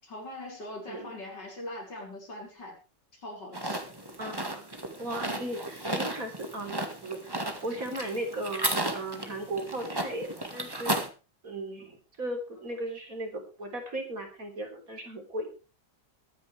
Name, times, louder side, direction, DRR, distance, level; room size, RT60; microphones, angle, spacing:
voice 1, 0.0-2.8 3.1-3.9, left 1 dB, 75° left, -1 dB, 6.3 m, -41 dB
sound 1, 3.5-11.1, right 1 dB, 15° right, 1.8 m, -34 dB
voice 2, 4.2-6.8 7.0-10.9 11.4-15.5, right 1 dB, 50° right, 3 dB, 4.1 m, -37 dB
22.5 x 9.7 x 3.4 m, 0.32 s
omnidirectional pair, 1.9 m